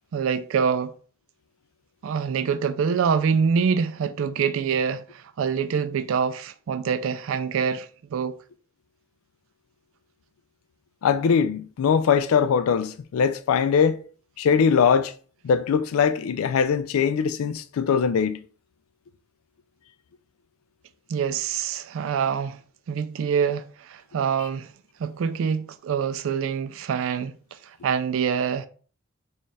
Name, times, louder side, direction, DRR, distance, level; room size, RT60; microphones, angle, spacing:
voice 1, 0.1-0.9 2.0-8.3 21.1-22.6 22.9-24.7 25.0-28.7, right 6 dB, 70° right, 0.3 m, -25 dB
voice 2, 11.0-14.0 14.4-15.1 15.4-18.4, left 6 dB, 85° left, 0.4 m, -21 dB
4.2 x 2.3 x 3.3 m
head